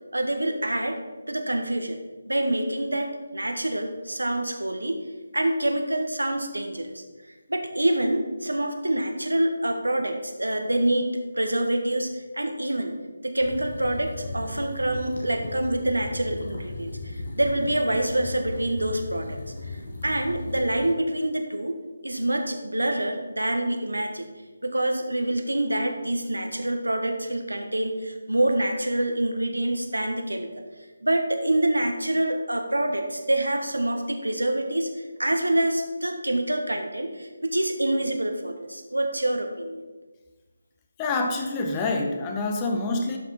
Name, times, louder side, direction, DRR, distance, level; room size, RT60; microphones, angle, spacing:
voice 1, 0.1-1.0 1.3-2.0 2.3-5.0 5.3-7.0 7.5-12.9 13.2-19.4 20.0-24.3 24.6-30.6 31.0-34.9 35.2-39.8, right 1 dB, 75° right, 5 dB, 1.4 m, -26 dB
sound 1, 13.4-20.9, left 2 dB, 45° left, 2.0 m, -36 dB
voice 2, 41.0-43.2, left 3 dB, 15° left, 3 dB, 0.8 m, -26 dB
12.0 x 5.8 x 4.4 m, 1.2 s
figure-of-eight pair, 150°, 0 cm